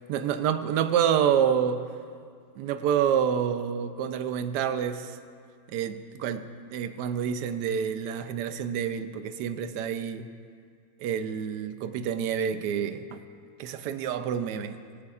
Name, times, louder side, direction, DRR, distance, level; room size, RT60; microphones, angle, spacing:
voice 1, 0.1-1.9 2.6-5.2 5.7-10.3 11.0-13.0 13.6-14.8, right 8 dB, 80° right, 10 dB, 1.2 m, -28 dB
23.0 x 8.4 x 2.4 m, 2.2 s
omnidirectional pair, 1.8 m